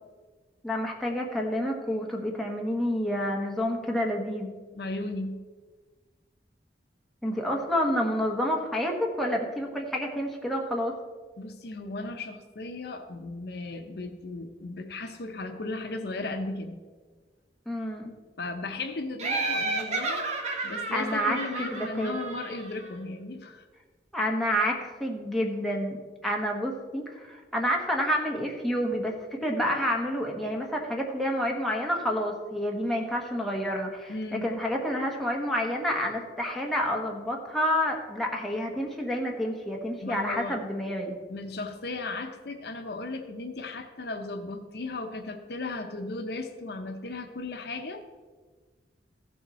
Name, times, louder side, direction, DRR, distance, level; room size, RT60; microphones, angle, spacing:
voice 1, 0.6-4.5 7.2-10.9 17.7-18.1 20.9-22.1 24.1-41.1, equal, ahead, -1 dB, 1.3 m, -29 dB
voice 2, 4.7-5.4 11.4-16.8 18.4-23.6 34.1-34.5 40.0-40.6 41.3-48.0, left 2 dB, 65° left, 7 dB, 0.8 m, -36 dB
Laughter, 19.2-22.8, right 3 dB, 40° right, 1.3 m, -32 dB
14.5 x 6.6 x 4.2 m, 1.4 s
head